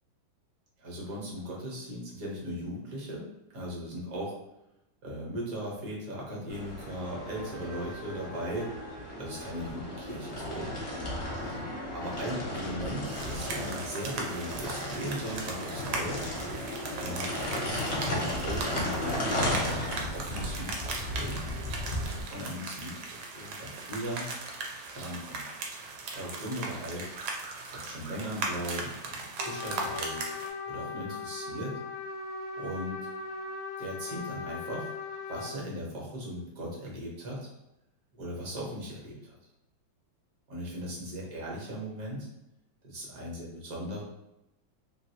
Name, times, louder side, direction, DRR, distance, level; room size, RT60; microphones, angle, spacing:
voice 1, 0.8-4.3 5.0-8.7 9.2-10.7 11.4-16.2 16.9-17.3 17.6-19.4 19.8-21.4 22.3-22.9 23.3-24.3 24.9-25.4 26.1-27.1 27.7-30.2 30.7-31.8 32.5-33.0 33.8-34.9 35.3-37.5 38.2-39.3 40.5-42.3 42.8-44.0, equal, 55° right, -3 dB, 1.2 m, -38 dB
sound 1, 6.5-22.2, left 1 dB, 55° left, 0.8 m, -35 dB
sound 2, 13.1-30.5, right 3 dB, 85° right, 1.4 m, -38 dB
Trumpet, 29.4-35.6, left 4 dB, 75° left, 1.2 m, -39 dB
3.3 x 2.5 x 2.7 m, 0.90 s
omnidirectional pair, 2.1 m